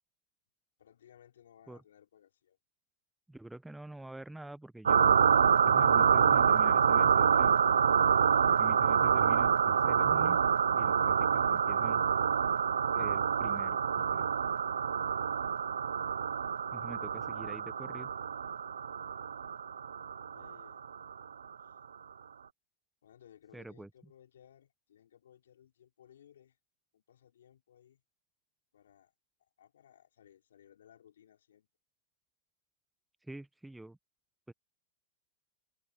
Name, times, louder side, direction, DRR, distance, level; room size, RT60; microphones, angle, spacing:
voice 1, 0.8-2.6 20.0-20.8 21.6-21.8 23.0-26.6 26.9-28.0 28.7-29.1 29.6-31.7, left 10 dB, 80° left, 5.1 m, -61 dB
voice 2, 3.3-7.5 8.5-10.4 10.7-12.0 12.9-14.3 16.7-18.1 23.5-23.9 33.2-34.0 34.5-34.6, right 1 dB, 5° right, 0.9 m, -46 dB
sound 1, 4.8-21.1, right 7 dB, 85° right, 0.4 m, -27 dB
hypercardioid pair, 110°, 0 cm